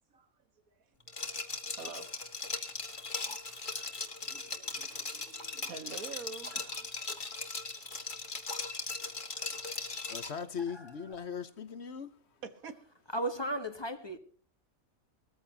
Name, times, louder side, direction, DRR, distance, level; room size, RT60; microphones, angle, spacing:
Liquid, 1.1-10.4, left 3 dB, 35° left, 1.8 m, -39 dB
voice 1, 1.1-2.2 2.8-7.0 7.9-8.0 9.3-9.5 12.4-12.9, right 5 dB, 90° right, 1.8 m, -49 dB
voice 2, 9.9-12.2, left 6 dB, 55° left, 1.2 m, -39 dB
voice 3, 13.1-14.2, right 1 dB, 20° left, 1.3 m, -35 dB
20.0 x 14.5 x 2.8 m
omnidirectional pair, 1.4 m